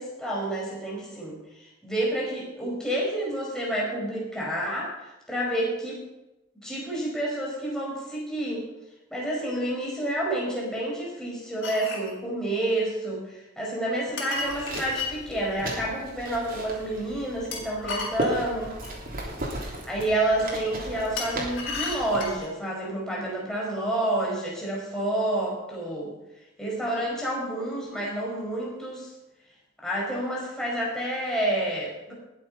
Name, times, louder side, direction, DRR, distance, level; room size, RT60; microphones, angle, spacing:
voice 1, 0.0-6.0 6.6-8.7 9.1-18.8 19.6-26.1 26.6-29.1 29.8-32.1, right 1 dB, 5° left, -4 dB, 4.8 m, -29 dB
sound 1, 11.6-12.1 14.2-15.1 17.5-19.0 21.2-22.5, left 4 dB, 65° left, 4.5 m, -34 dB
sound 2, 14.3-22.4, right 1 dB, 45° right, 3.3 m, -36 dB
20.0 x 7.6 x 5.6 m, 0.97 s
head